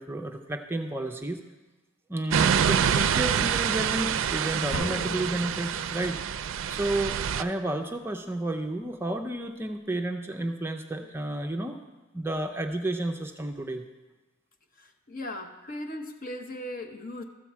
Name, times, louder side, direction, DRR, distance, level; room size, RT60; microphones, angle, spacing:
voice 1, 0.0-1.4 2.1-11.8 12.1-13.8, right 1 dB, 10° right, 5 dB, 0.5 m, -31 dB
sound 1, 2.3-7.4, right 8 dB, 75° right, 0.4 m, -26 dB
sound 2, 4.7-6.4, left 1 dB, 75° left, 0.9 m, -37 dB
voice 2, 14.8-17.2, left 1 dB, 45° left, 6 dB, 0.9 m, -38 dB
13.5 x 4.5 x 7.3 m, 1.2 s
head